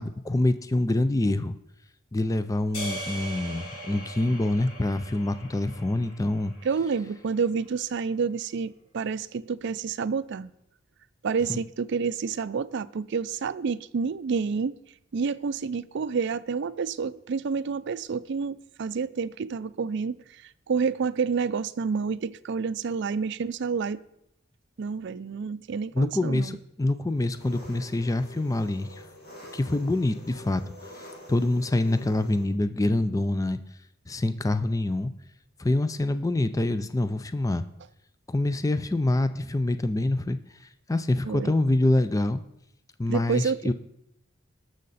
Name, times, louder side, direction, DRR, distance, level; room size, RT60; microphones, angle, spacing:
voice 1, 0.0-1.6 2.1-6.5 11.5-11.6 25.9-29.0 29.5-30.6 31.3-33.6 34.1-35.1 35.6-37.6 38.3-40.4 40.9-42.4 43.0-43.7, left 2 dB, 15° left, 0.4 m, -25 dB
sound 1, 2.7-7.1, right 1 dB, 70° left, 4.7 m, -40 dB
voice 2, 6.6-10.5 11.2-14.8 15.1-24.0 24.8-26.6 41.2-41.5 43.1-43.7, right 5 dB, 60° right, 0.4 m, -29 dB
Engine, 27.2-32.4, left 1 dB, 55° left, 3.7 m, -47 dB
18.5 x 6.5 x 4.1 m
head